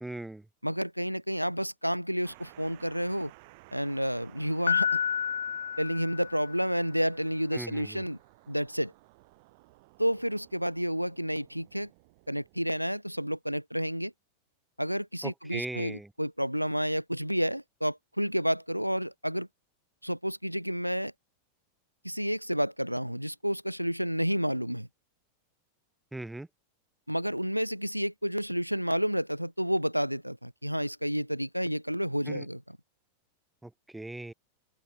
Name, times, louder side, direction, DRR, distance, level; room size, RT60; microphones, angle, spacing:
voice 1, 0.0-0.4 7.5-8.0 15.2-16.1 26.1-26.5 32.3-32.5 33.6-34.3, right 2 dB, 5° right, 0.9 m, -39 dB
voice 2, 0.6-3.3 3.7-5.0 5.8-8.2 8.5-8.9 10.0-11.9 12.3-14.1 14.8-19.5 20.0-21.1 22.0-24.9 27.1-32.6, equal, 90° right, 0.4 m, -30 dB
sound 1, 2.2-12.7, right 25 dB, 50° right, 6.6 m, -57 dB
Piano, 4.7-6.8, left 8 dB, 70° left, 0.9 m, -30 dB
open air
figure-of-eight pair, 90°, 0 cm